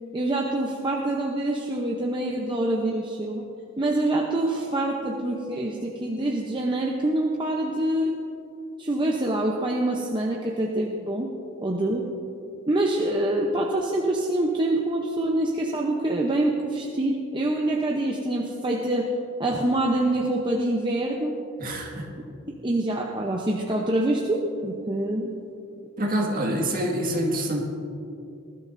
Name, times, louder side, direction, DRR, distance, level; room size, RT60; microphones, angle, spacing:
voice 1, 0.1-3.5 3.8-8.1 8.8-11.3 11.6-12.1 12.7-19.1 19.4-21.3 22.6-25.3, right 1 dB, 20° right, 0 dB, 0.7 m, -25 dB
voice 2, 21.6-22.1 26.0-27.6, right 1 dB, 40° right, -1 dB, 1.9 m, -26 dB
19.5 x 12.5 x 2.6 m, 2.6 s
head